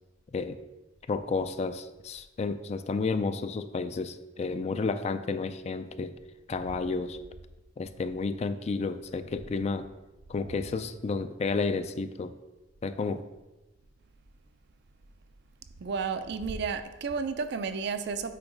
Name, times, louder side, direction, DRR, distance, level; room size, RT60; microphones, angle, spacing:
voice 1, 1.1-6.1 6.5-7.2 7.8-9.9 10.3-12.3 12.8-13.2, left 4 dB, 35° left, 11 dB, 0.3 m, -31 dB
voice 2, 15.8-18.4, right 5 dB, 65° right, 9 dB, 0.5 m, -32 dB
8.5 x 3.0 x 5.1 m, 1.1 s
head